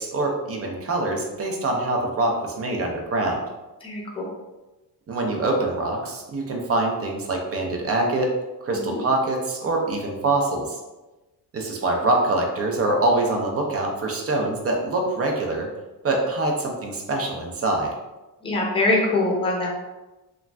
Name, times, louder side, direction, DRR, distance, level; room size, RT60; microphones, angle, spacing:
voice 1, 0.0-3.4 5.1-8.4 8.6-10.8 11.5-15.7 16.0-17.9, right 2 dB, 35° right, 1 dB, 0.6 m, -24 dB
voice 2, 3.8-4.3 8.7-9.0 18.4-19.7, left 2 dB, 15° left, -2 dB, 0.6 m, -23 dB
3.0 x 2.4 x 2.2 m, 1.1 s
cardioid pair, 100°, 41 cm